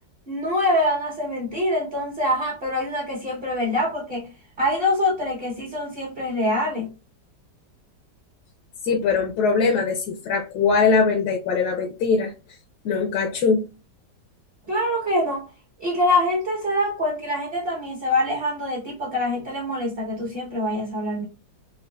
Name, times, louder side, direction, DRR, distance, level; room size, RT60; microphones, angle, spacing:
voice 1, 0.3-4.3 4.6-6.9 14.7-15.5 15.8-21.2, left 1 dB, 40° right, 0.9 m, -24 dB
voice 2, 8.8-12.3 12.8-13.7, left 5 dB, 70° left, 1.0 m, -21 dB
3.9 x 2.3 x 2.2 m
omnidirectional pair, 1.9 m